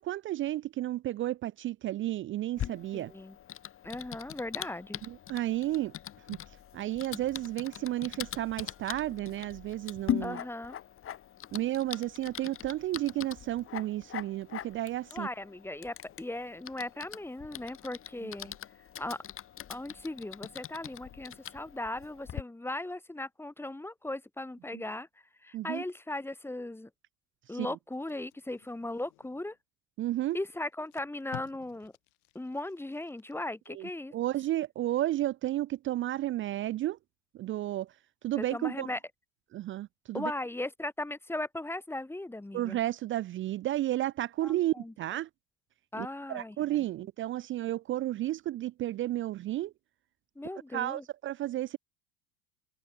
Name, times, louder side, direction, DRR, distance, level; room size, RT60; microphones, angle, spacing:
voice 1, 0.0-3.1 5.1-5.9 6.3-6.4 6.7-10.4 11.5-15.3 18.2-18.3 24.7-24.8 25.5-25.8 27.5-27.8 30.0-30.4 33.7-37.0 37.3-37.9 38.2-38.9 39.5-40.3 42.5-45.3 46.0-49.7 50.7-51.8, right 14 dB, 30° right, 0.5 m, -32 dB
Typing, 2.6-22.4, left 10 dB, 30° left, 1.8 m, -41 dB
voice 2, 2.9-3.4 3.8-5.0 10.2-10.8 15.1-18.5 19.0-19.2 19.7-25.1 25.4-26.9 27.5-29.6 30.3-31.9 32.3-34.1 38.3-39.0 40.1-42.8 44.4-44.9 45.9-46.8 50.4-51.0, left 2 dB, 5° left, 1.4 m, -38 dB
Packing tape duct tape, 27.9-29.6 30.3-30.4 30.7-33.7 34.1-34.3, left 29 dB, 60° left, 1.6 m, -52 dB
hypercardioid pair, 85°, 40 cm